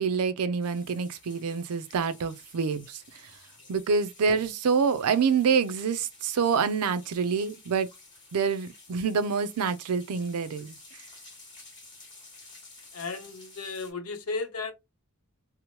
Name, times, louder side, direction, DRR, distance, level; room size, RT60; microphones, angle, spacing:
voice 1, 0.0-3.0 3.7-7.9 8.3-10.8, right 5 dB, 85° right, 0.4 m, -26 dB
sound 1, 0.6-13.9, left 3 dB, 20° left, 1.4 m, -52 dB
voice 2, 12.9-14.7, left 4 dB, 75° left, 0.7 m, -34 dB
2.9 x 2.0 x 2.8 m
head